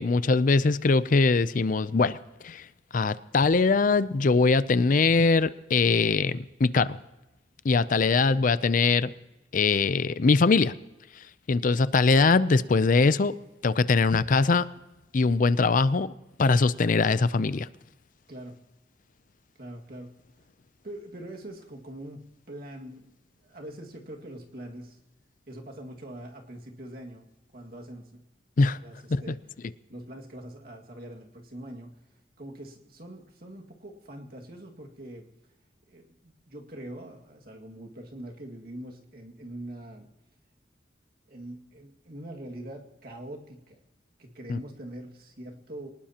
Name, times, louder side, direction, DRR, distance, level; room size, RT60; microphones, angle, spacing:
voice 1, 0.0-2.2 2.4-2.7 2.9-7.0 7.6-9.1 9.5-10.8 11.5-13.4 13.6-14.7 15.1-16.1 16.4-17.7 28.6-28.8 29.1-29.3 44.5-44.6, left 4 dB, 50° left, 16 dB, 0.5 m, -22 dB
voice 2, 19.6-20.1 20.8-25.0 25.5-27.3 27.5-28.2 28.8-29.4 29.9-31.9 32.4-35.3 35.9-40.1 41.3-43.8 44.2-45.9, right 1 dB, 55° right, 1 dB, 2.0 m, -43 dB
24.0 x 19.0 x 2.9 m, 1.0 s
head